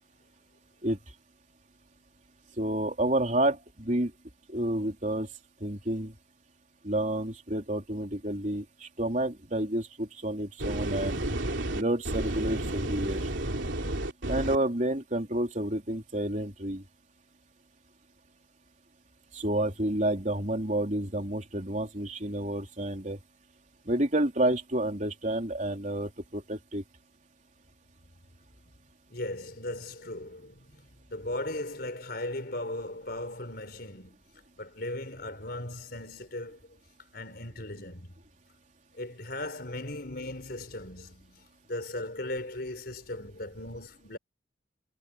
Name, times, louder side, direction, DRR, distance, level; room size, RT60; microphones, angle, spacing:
voice 1, 2.6-4.1 4.5-5.3 5.6-6.1 6.8-8.6 9.0-11.3 11.7-13.2 14.3-16.8 19.3-23.2 23.9-26.8, right 1 dB, 40° right, 3.8 m, -29 dB
sound 1, 10.6-14.6, right 1 dB, 85° right, 3.0 m, -31 dB
voice 2, 29.1-34.2 34.6-36.7 37.1-38.1 38.9-44.2, left 1 dB, 55° left, 4.9 m, -38 dB
head